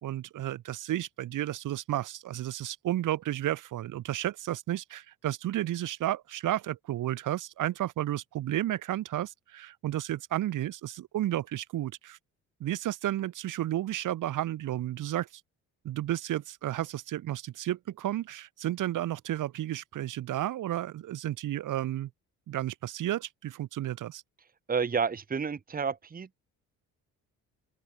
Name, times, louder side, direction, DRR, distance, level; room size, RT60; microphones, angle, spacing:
voice 1, 0.0-12.2 12.6-15.3 15.8-22.1 22.5-24.2, right 13 dB, 70° right, 5.0 m, -32 dB
voice 2, 24.7-26.3, right 5 dB, 25° right, 1.8 m, -30 dB
open air
cardioid pair, 115°, 33 cm